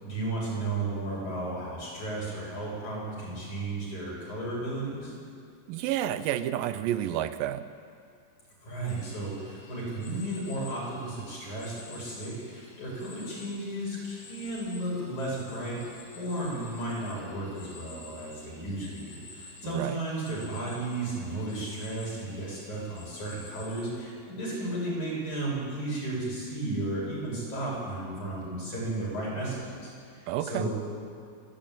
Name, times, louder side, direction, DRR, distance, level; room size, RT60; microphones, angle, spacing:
voice 1, 0.0-5.1 8.6-30.8, right 2 dB, 55° left, -5 dB, 8.6 m, -34 dB
voice 2, 5.7-7.6 19.6-20.0 30.3-30.7, right 12 dB, 85° right, 12 dB, 2.4 m, -30 dB
sound 1, 8.9-23.8, left 3 dB, 85° left, 4.8 m, -50 dB
28.0 x 11.0 x 9.0 m, 2.3 s
omnidirectional pair, 3.9 m